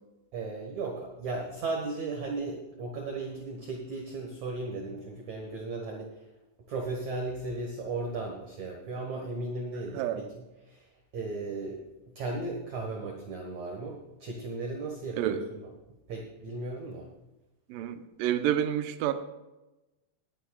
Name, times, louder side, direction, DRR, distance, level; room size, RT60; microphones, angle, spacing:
voice 1, 0.3-6.3 6.7-11.8 12.1-15.7 16.1-17.1, right 3 dB, 55° right, 0 dB, 2.2 m, -36 dB
voice 2, 17.7-19.1, right 11 dB, 80° right, 8 dB, 2.0 m, -29 dB
20.0 x 11.0 x 2.4 m, 1.0 s
omnidirectional pair, 4.9 m